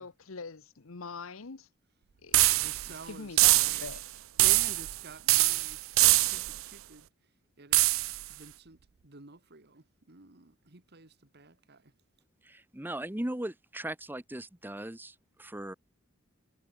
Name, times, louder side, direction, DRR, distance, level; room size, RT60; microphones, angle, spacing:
voice 1, 0.0-1.7 2.2-2.5 2.8-4.0, left 4 dB, 90° left, 1.0 m, -43 dB
sound 1, 2.3-2.9 3.4-4.0 4.4-5.0 5.3-6.6 7.7-8.2, right 20 dB, 75° right, 0.4 m, -24 dB
voice 2, 2.5-3.9 4.4-5.8 6.1-7.1 7.6-7.9 8.3-11.9, right 3 dB, 55° right, 2.1 m, -50 dB
voice 3, 12.5-15.7, right 1 dB, 10° right, 1.1 m, -38 dB
head